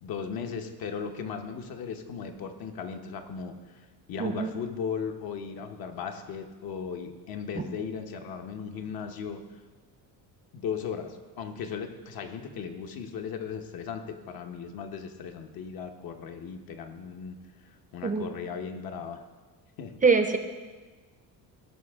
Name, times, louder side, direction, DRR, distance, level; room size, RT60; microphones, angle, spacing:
voice 1, 0.0-9.4 10.5-17.4 17.6-19.2 19.8-20.0, left 6 dB, 60° left, 5 dB, 1.1 m, -37 dB
voice 2, 4.2-4.5 18.0-18.2 20.0-20.4, right 4 dB, 20° right, 7 dB, 0.5 m, -23 dB
16.5 x 5.7 x 3.6 m, 1.3 s
cardioid pair, 135°, 40 cm